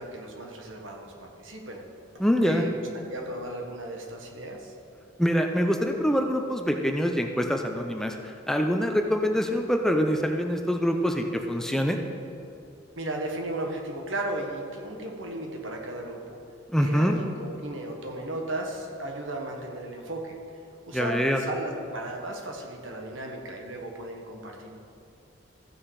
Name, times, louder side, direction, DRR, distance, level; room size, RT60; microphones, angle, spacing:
voice 1, 0.0-1.8 2.4-2.7 3.0-4.7 13.0-16.4 16.8-20.4 20.9-24.8, right 1 dB, 75° right, 1 dB, 1.5 m, -35 dB
voice 2, 2.2-2.6 5.2-12.0 16.7-17.2 20.9-21.4, equal, ahead, 3 dB, 0.5 m, -25 dB
14.5 x 6.2 x 4.8 m, 2.6 s
head